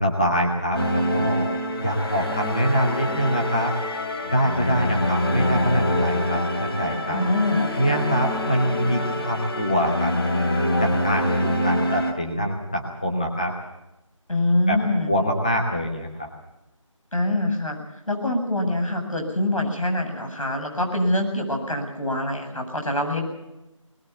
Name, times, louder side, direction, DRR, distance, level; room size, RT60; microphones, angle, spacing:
voice 1, 0.0-1.5 1.8-3.7 4.3-7.2 7.7-10.1 10.8-13.5 14.7-14.8 15.1-16.3, equal, 15° left, 0 dB, 1.0 m, -24 dB
sound 1, 0.7-12.1, left 1 dB, 45° left, 2.9 m, -25 dB
voice 2, 7.1-8.0 14.3-15.1 17.1-17.8 18.1-23.2, left 1 dB, 80° left, 4 dB, 7.8 m, -24 dB
21.0 x 20.5 x 7.0 m, 0.96 s
figure-of-eight pair, 175°, 17 cm